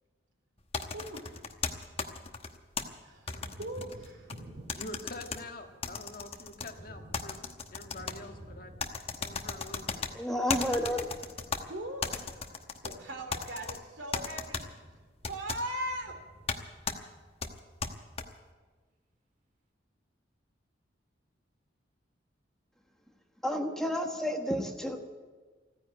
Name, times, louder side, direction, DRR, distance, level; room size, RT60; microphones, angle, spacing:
sound 1, 0.7-2.8 3.3-4.4 4.7-5.4 5.8-6.7 7.1-8.2 8.8-10.1 10.5-11.6 12.0-12.9 13.3-13.8 14.1-14.6 15.2-15.6 16.5-16.6 16.9-17.0 17.4-18.2, left 5 dB, 35° left, 1.0 m, -35 dB
voice 1, 0.9-1.4 3.0-4.3 11.6-12.1 12.8-14.7 15.3-16.1, right 1 dB, 85° right, 4 dB, 2.8 m, -39 dB
Thunder, 1.3-2.3 2.6-17.8, equal, 45° right, 1.8 m, -53 dB
voice 2, 4.7-7.4 7.7-8.7 9.2-10.1, left 2 dB, 50° left, 3 dB, 1.6 m, -45 dB
voice 3, 10.1-11.1 23.4-25.0, equal, 5° left, 3 dB, 1.2 m, -31 dB
15.5 x 9.8 x 9.2 m, 1.4 s
head